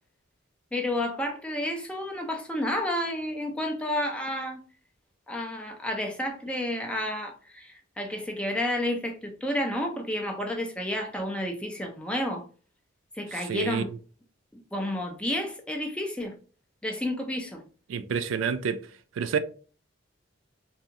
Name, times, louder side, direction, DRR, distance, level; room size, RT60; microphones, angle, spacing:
voice 1, 0.7-4.6 5.3-12.4 13.2-13.9 14.7-16.3 16.8-17.6, left 1 dB, 5° left, 0.4 m, -31 dB
voice 2, 13.5-14.0 17.9-18.8 19.2-19.4, right 6 dB, 90° right, 0.3 m, -28 dB
2.6 x 2.3 x 2.7 m
head